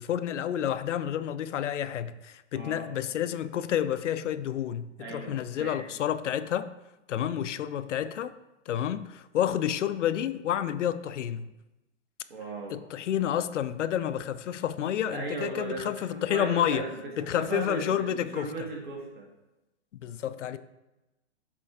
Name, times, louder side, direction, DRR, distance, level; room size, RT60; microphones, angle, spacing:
voice 1, 0.0-6.7 7.1-8.3 8.7-11.5 12.7-16.8 17.2-18.5 20.0-20.6, left 10 dB, 80° left, 0.6 m, -30 dB
voice 2, 2.5-2.9 5.0-5.8 12.3-12.8 15.1-19.3, right 3 dB, 45° right, 1.8 m, -37 dB
7.1 x 4.4 x 3.6 m
hypercardioid pair, 160°, 36 cm